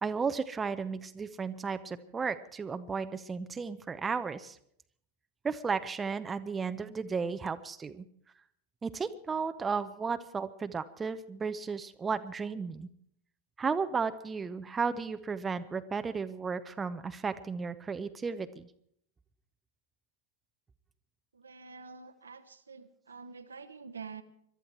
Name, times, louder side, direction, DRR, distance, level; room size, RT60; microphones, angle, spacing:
voice 1, 0.0-4.6 5.4-8.0 8.8-12.9 13.6-18.7, right 5 dB, 15° right, 11 dB, 0.6 m, -34 dB
voice 2, 21.3-24.2, right 5 dB, 75° right, 8 dB, 1.0 m, -47 dB
22.0 x 12.5 x 4.6 m, 0.69 s
figure-of-eight pair, 90°, 0 cm